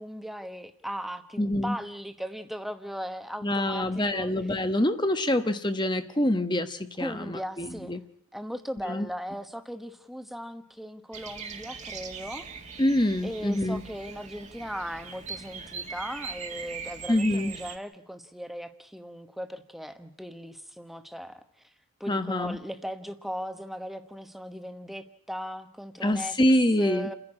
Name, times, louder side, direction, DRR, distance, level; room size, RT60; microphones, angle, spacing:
voice 1, 0.0-4.6 7.0-8.0 8.3-12.5 13.2-21.7 22.0-26.4 26.8-27.1, equal, ahead, 8 dB, 1.1 m, -38 dB
voice 2, 1.4-1.8 3.4-8.0 8.9-9.1 12.8-13.8 17.1-17.5 22.1-22.6 26.0-27.1, left 1 dB, 20° left, 9 dB, 1.1 m, -26 dB
Bird vocalization bird call bird song, 11.1-17.8, right 5 dB, 30° right, 1.7 m, -41 dB
30.0 x 11.0 x 9.8 m, 0.66 s
head